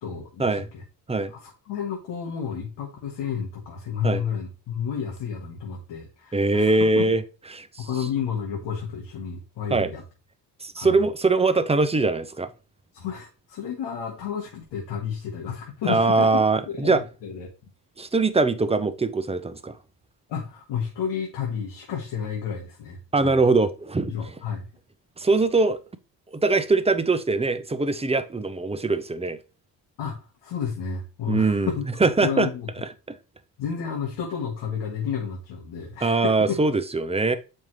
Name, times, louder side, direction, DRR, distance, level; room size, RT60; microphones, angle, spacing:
voice 1, 0.0-0.8 1.3-7.1 7.8-10.0 10.8-11.0 12.9-17.5 20.3-23.3 24.1-24.7 30.0-31.9 32.2-32.7 33.6-36.6, left 7 dB, 85° left, 1.7 m, -31 dB
voice 2, 6.3-7.2 7.5-8.1 9.7-9.9 10.6-12.5 15.9-17.0 18.0-19.8 23.1-24.3 25.2-25.8 26.3-29.4 31.3-31.7 32.0-32.5 33.1-33.2 36.0-37.4, right 3 dB, 15° right, 0.7 m, -22 dB
7.3 x 5.4 x 3.1 m
cardioid pair, 90°, 42 cm